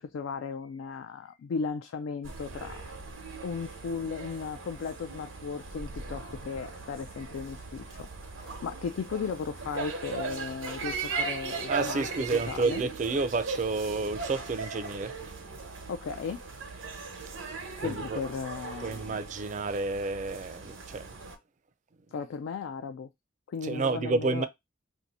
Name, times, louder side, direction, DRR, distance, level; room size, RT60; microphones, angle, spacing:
voice 1, 0.0-2.8 3.4-12.0 12.4-12.8 15.9-16.6 17.8-19.2 22.1-23.1 23.5-24.5, left 5 dB, 80° left, 0.3 m, -36 dB
sound 1, 2.2-21.4, right 4 dB, 90° right, 0.9 m, -39 dB
voice 2, 11.7-15.1 17.8-18.2 18.8-21.1 23.6-24.5, right 3 dB, 40° right, 0.4 m, -30 dB
2.7 x 2.6 x 4.0 m
head